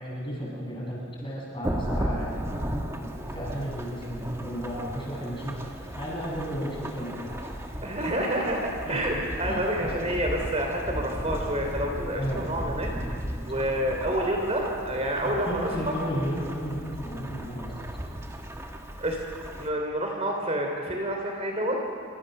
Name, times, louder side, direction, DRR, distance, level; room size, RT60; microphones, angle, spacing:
voice 1, 0.0-7.6 8.9-9.0 9.5-9.9 12.2-12.4 15.2-17.7, equal, 25° left, -4 dB, 7.5 m, -34 dB
Thunderstorm / Rain, 1.6-19.7, equal, 15° right, 1.8 m, -35 dB
voice 2, 7.8-12.9 13.5-15.7 19.0-19.2 19.6-21.8, right 1 dB, 30° right, 1 dB, 3.1 m, -28 dB
27.5 x 25.5 x 6.7 m, 2.4 s
head